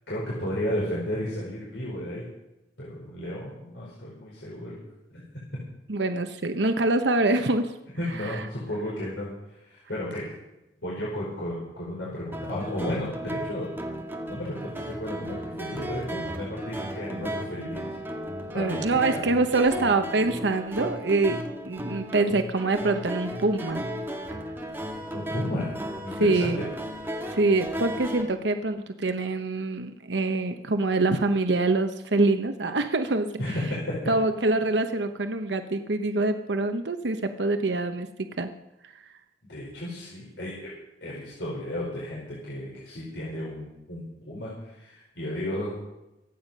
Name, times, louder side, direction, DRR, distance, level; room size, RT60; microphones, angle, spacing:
voice 1, 0.1-2.2 2.8-4.8 5.1-5.2 8.0-9.3 9.6-10.3 10.8-13.7 14.3-17.8 18.5-19.2 25.1-25.7 26.0-26.6 33.4-33.9 39.5-40.7 41.0-45.7, left 1 dB, 75° left, -5 dB, 4.8 m, -33 dB
voice 2, 5.9-7.8 8.2-8.4 18.5-23.8 26.2-26.6 27.3-33.4 34.1-38.1 38.4-38.5 38.8-38.9, right 2 dB, 70° right, 7 dB, 0.9 m, -25 dB
sound 1, 12.3-28.2, right 1 dB, 10° right, 2.1 m, -35 dB
25.0 x 9.2 x 5.4 m, 0.94 s
head